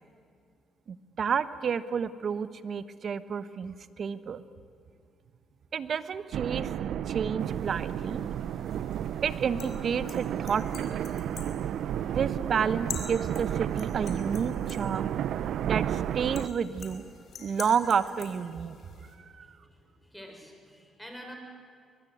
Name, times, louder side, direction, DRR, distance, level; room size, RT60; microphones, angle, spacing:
voice 1, 0.9-4.4 5.7-8.2 9.2-11.0 12.0-15.1 15.6-17.0 17.4-18.8 19.4-19.5, right 7 dB, 55° right, 14 dB, 1.1 m, -30 dB
sound 1, 6.3-16.5, right 10 dB, 75° right, 0.6 m, -32 dB
sound 2, 7.4-19.1, left 6 dB, 60° left, 4.5 m, -47 dB
voice 2, 19.4-21.3, equal, 5° left, 2 dB, 6.3 m, -48 dB
23.0 x 22.5 x 9.5 m, 2.3 s
cardioid pair, 90°, 0 cm